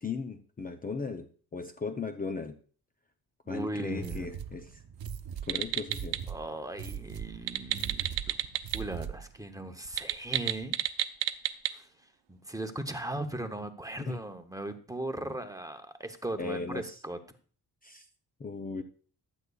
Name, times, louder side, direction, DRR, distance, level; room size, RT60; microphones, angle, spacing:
voice 1, 0.0-1.3 1.5-2.6 3.5-4.8 5.5-6.2 14.0-14.2 16.4-17.0 17.8-18.0 18.4-18.8, left 4 dB, 20° left, 6 dB, 0.6 m, -37 dB
voice 2, 3.5-4.3 6.3-8.4 8.7-10.8 11.7-11.9 12.3-17.2, right 1 dB, 10° right, 6 dB, 0.8 m, -38 dB
sound 1, 3.9-9.4, right 8 dB, 60° right, 0.9 m, -41 dB
typing-phone, 5.4-6.2 7.3-8.8 9.1-9.2 9.9-11.7, right 11 dB, 90° right, 0.8 m, -31 dB
15.0 x 11.0 x 2.3 m, 0.43 s
wide cardioid pair, 145°, 41 cm